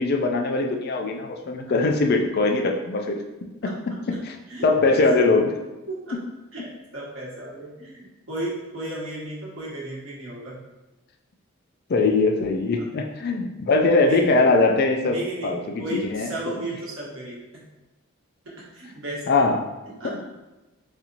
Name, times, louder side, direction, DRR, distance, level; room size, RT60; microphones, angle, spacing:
voice 1, 0.0-3.2 3.6-3.7 4.2-4.3 4.6-5.5 11.9-15.2 15.4-16.5 19.3-19.6 20.0-20.2, left 3 dB, 45° left, 3 dB, 0.4 m, -21 dB
voice 2, 4.5-5.0 5.9-6.1 6.5-10.6 12.8-12.9 14.1-14.4 15.0-15.5 15.8-17.6 18.7-19.3 20.0-20.1, right 1 dB, 75° right, -5 dB, 1.2 m, -34 dB
4.2 x 2.8 x 2.5 m, 1.1 s
head